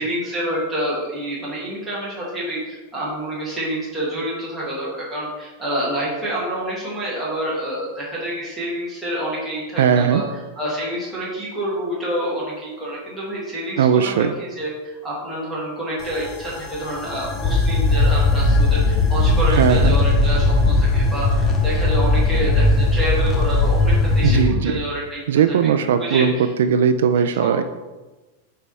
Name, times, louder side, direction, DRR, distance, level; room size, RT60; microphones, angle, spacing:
voice 1, 0.0-10.2 10.6-25.2 25.8-26.5 27.4-27.6, right 1 dB, 5° right, -8 dB, 1.6 m, -27 dB
voice 2, 9.8-10.2 13.8-14.3 19.5-19.9 24.2-24.7 25.3-27.6, right 7 dB, 70° right, 10 dB, 0.3 m, -18 dB
sound 1, 16.0-24.5, left 2 dB, 20° left, 0.5 m, -18 dB
5.4 x 4.5 x 4.1 m, 1.2 s
supercardioid pair, 180°, 0 cm